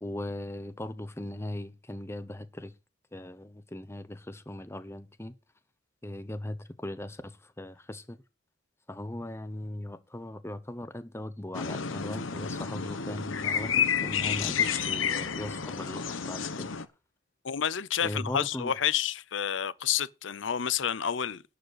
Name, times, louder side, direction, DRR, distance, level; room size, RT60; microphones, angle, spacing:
voice 1, 0.0-2.7 3.1-5.3 6.0-8.2 8.9-16.7 18.0-18.7, left 1 dB, 15° left, 0.9 m, -39 dB
sound 1, 11.5-16.9, left 7 dB, 85° left, 1.0 m, -30 dB
sound 2, 13.5-16.7, left 3 dB, 50° left, 2.3 m, -54 dB
voice 2, 17.4-21.4, left 9 dB, 70° left, 0.6 m, -29 dB
11.5 x 5.1 x 8.1 m
head